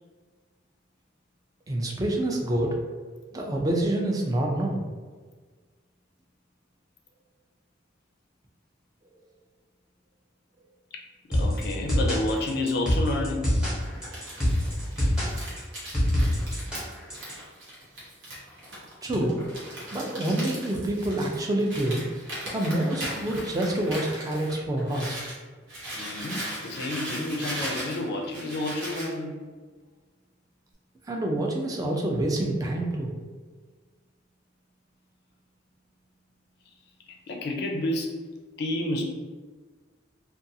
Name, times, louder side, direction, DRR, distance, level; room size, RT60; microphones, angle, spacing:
voice 1, 1.7-2.7 3.3-4.8 19.0-19.4 19.9-22.0 22.5-25.3 31.1-33.1, right 1 dB, 20° right, 0 dB, 0.4 m, -27 dB
voice 2, 11.3-13.5 25.9-29.4 37.1-38.2 38.6-39.0, left 1 dB, 55° left, 1 dB, 0.4 m, -30 dB
sound 1, 11.3-17.3, equal, 5° right, 0.7 m, -25 dB
Crumpling crinkling, 13.8-25.4 25.7-29.1, right 1 dB, 85° right, 1.0 m, -38 dB
2.5 x 2.3 x 2.6 m, 1.4 s
head